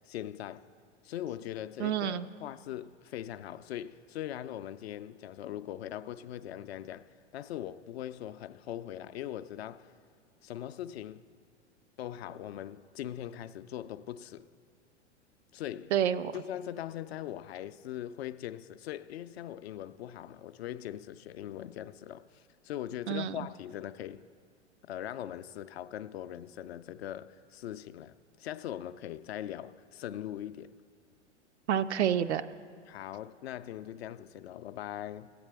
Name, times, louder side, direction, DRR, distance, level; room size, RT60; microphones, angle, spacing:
voice 1, 0.1-0.7 1.0-9.9 10.4-11.2 12.0-14.5 15.5-15.9 16.3-24.2 24.9-30.7 32.9-35.3, left 11 dB, 60° left, 0.4 m, -41 dB
voice 2, 1.8-2.3 15.9-16.4 23.1-23.4 31.7-32.5, right 9 dB, 70° right, 0.5 m, -28 dB
15.5 x 8.4 x 3.4 m
figure-of-eight pair, 95°, 35 cm